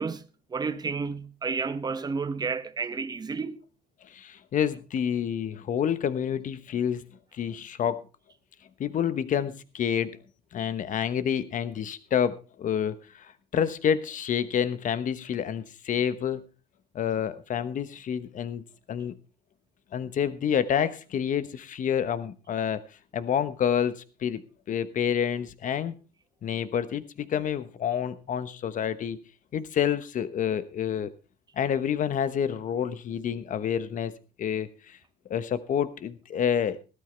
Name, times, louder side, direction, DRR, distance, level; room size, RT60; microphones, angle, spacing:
voice 1, 0.0-3.6, right 5 dB, 25° right, 0.9 m, -31 dB
voice 2, 4.1-7.0 7.3-8.0 8.8-10.2 10.5-16.4 16.9-19.1 19.9-22.8 23.1-24.4 24.7-25.9 26.4-29.2 29.5-31.1 31.6-34.1 34.4-35.0 35.3-36.8, left 8 dB, 50° left, 1.1 m, -28 dB
16.0 x 13.0 x 3.4 m
cardioid pair, 110°, 17 cm